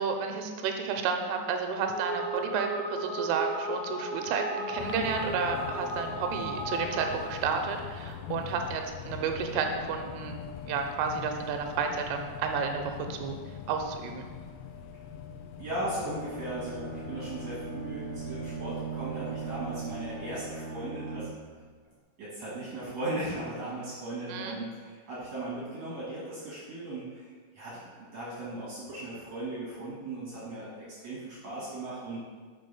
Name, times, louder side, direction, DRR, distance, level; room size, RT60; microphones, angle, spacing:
voice 1, 0.0-10.4 10.6-13.4 13.7-14.3 24.3-24.6, right 5 dB, 90° right, 4 dB, 3.1 m, -31 dB
sound 1, 1.7-7.5, right 1 dB, 60° left, 2.2 m, -35 dB
sound 2, 4.8-20.4, left 8 dB, 85° left, 2.5 m, -42 dB
Bowed string instrument, 15.6-21.6, right 5 dB, 55° right, 0.9 m, -39 dB
voice 2, 15.6-21.3 22.2-27.3 27.5-32.2, right 1 dB, 70° right, -9 dB, 1.5 m, -37 dB
7.5 x 3.8 x 5.3 m, 1.5 s
omnidirectional pair, 5.5 m